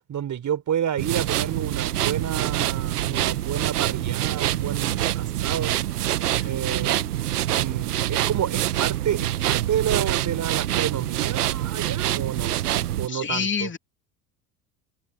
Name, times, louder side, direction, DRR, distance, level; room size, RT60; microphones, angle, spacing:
voice 1, 0.1-5.8 6.4-7.1 7.5-12.6 13.0-13.7, right 9 dB, 40° right, 5.1 m, -30 dB
sound 1, 1.0-13.1, right 13 dB, 85° right, 1.5 m, -25 dB
voice 2, 13.1-13.8, left 6 dB, 25° left, 3.1 m, -28 dB
hypercardioid pair, 75°, 45 cm